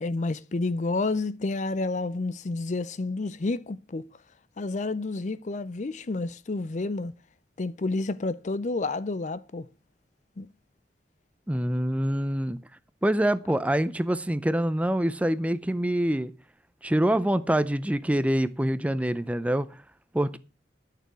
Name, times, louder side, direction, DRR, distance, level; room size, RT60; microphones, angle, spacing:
voice 1, 0.0-4.1 4.6-7.1 7.6-9.7 10.4-10.5, left 3 dB, 40° left, 0.5 m, -30 dB
voice 2, 11.5-12.6 13.0-16.3 16.8-19.7 20.1-20.4, right 1 dB, 10° right, 0.5 m, -25 dB
12.5 x 6.8 x 6.1 m
head